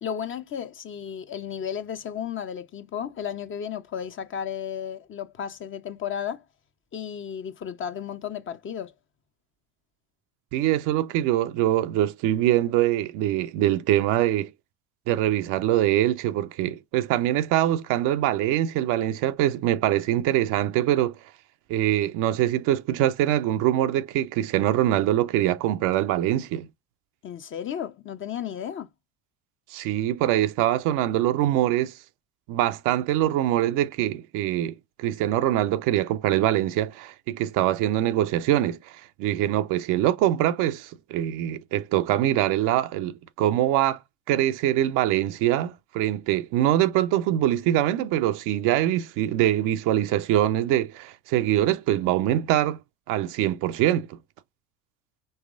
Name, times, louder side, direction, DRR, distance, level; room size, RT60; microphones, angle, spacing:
voice 1, 0.0-6.4 6.9-8.9 27.2-28.9, left 8 dB, 30° left, 0.6 m, -33 dB
voice 2, 10.5-14.5 15.1-21.2 21.7-26.7 29.7-31.9 32.5-44.0 44.3-52.8 53.1-54.2, right 13 dB, 45° right, 0.5 m, -23 dB
5.5 x 3.0 x 2.4 m
figure-of-eight pair, 60°, 43 cm